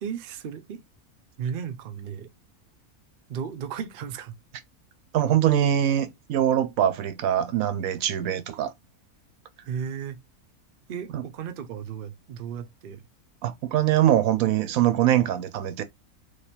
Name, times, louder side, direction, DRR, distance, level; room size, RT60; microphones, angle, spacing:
voice 1, 0.0-0.8 1.4-2.3 3.3-4.3 9.7-10.2 10.9-13.0, right 7 dB, 55° right, 0.7 m, -34 dB
voice 2, 5.1-8.7 11.1-11.2 13.4-15.8, right 11 dB, 70° right, 1.1 m, -23 dB
3.3 x 2.9 x 4.3 m
omnidirectional pair, 1.6 m